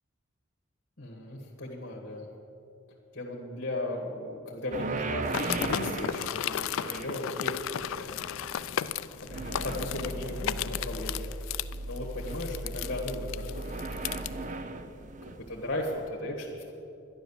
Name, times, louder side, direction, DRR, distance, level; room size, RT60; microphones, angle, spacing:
voice 1, 1.0-2.3 3.1-8.2 9.2-11.3 11.8-13.4 14.5-16.7, left 1 dB, 50° left, -1 dB, 1.6 m, -36 dB
sound 1, 4.7-16.1, right 2 dB, 35° right, 0.5 m, -38 dB
sound 2, 5.3-14.3, left 10 dB, 75° left, 0.4 m, -34 dB
11.5 x 10.5 x 7.1 m, 2.8 s
head